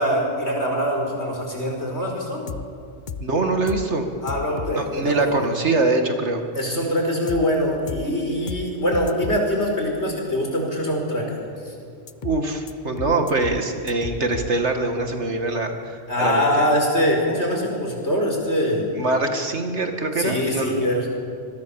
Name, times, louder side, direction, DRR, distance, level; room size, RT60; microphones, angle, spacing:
voice 1, 0.0-2.4 4.2-5.5 6.6-11.4 11.6-11.7 16.1-18.9 20.2-21.1, equal, 65° left, 1 dB, 5.3 m, -23 dB
sound 1, 2.5-2.6 3.1-3.2 3.7-3.8 4.3-4.7 7.3-7.4 7.9-8.0 8.5-8.6 8.9-9.4 12.1-12.4 12.7-12.8 13.0-13.6 13.9-14.5, left 6 dB, 45° left, 0.9 m, -32 dB
voice 2, 3.2-4.1 4.7-6.4 12.2-16.5 18.9-20.7, right 2 dB, 70° right, 5 dB, 2.5 m, -23 dB
26.5 x 21.5 x 7.2 m, 2.4 s
omnidirectional pair, 1.2 m